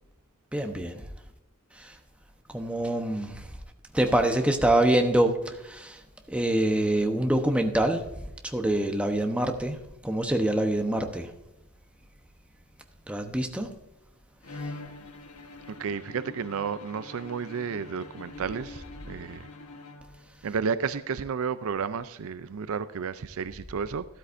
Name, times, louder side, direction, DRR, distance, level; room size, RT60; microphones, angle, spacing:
voice 1, 0.5-1.0 1.8-1.9 2.5-3.5 3.9-6.0 6.3-11.3 13.1-13.7, right 1 dB, 5° right, 0.9 m, -25 dB
Bowed string instrument, 14.4-20.5, left 3 dB, 80° left, 1.2 m, -44 dB
voice 2, 15.7-19.5 20.4-24.1, right 6 dB, 65° right, 0.5 m, -32 dB
12.5 x 12.5 x 2.6 m
head